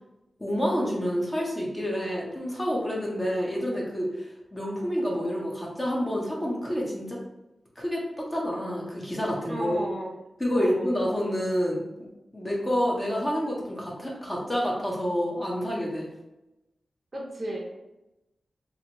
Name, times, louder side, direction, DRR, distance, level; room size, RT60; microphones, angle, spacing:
voice 1, 0.4-7.2 7.8-9.8 10.4-11.9 12.3-16.1, equal, 15° left, -3 dB, 0.7 m, -28 dB
voice 2, 9.5-10.1 10.5-10.9 17.1-17.7, right 1 dB, 30° right, -2 dB, 0.6 m, -34 dB
2.8 x 2.5 x 2.8 m, 0.95 s
wide cardioid pair, 140°, 0 cm